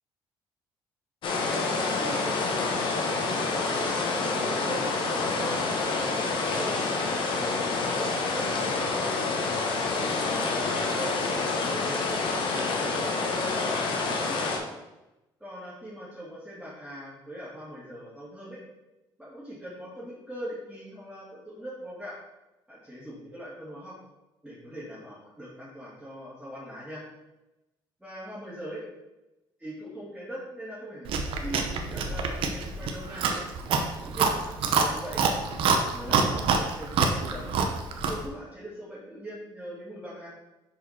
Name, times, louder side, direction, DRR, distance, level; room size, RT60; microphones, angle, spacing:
sound 1, 1.2-14.6, left 3 dB, 60° left, 1.3 m, -28 dB
voice 1, 1.5-3.1 3.6-6.8 7.3-10.2 10.7-11.9 12.5-14.5 15.4-18.6 19.2-22.2 22.7-24.0 24.4-27.0 28.0-28.8 29.6-33.2 34.1-35.2 35.6-37.4 38.1-40.3, equal, 5° right, -9 dB, 2.4 m, -41 dB
Chewing mastication, 31.1-38.3, right 5 dB, 70° right, 0.9 m, -27 dB
6.0 x 5.0 x 4.3 m, 1.0 s
cardioid pair, 95°, 9 cm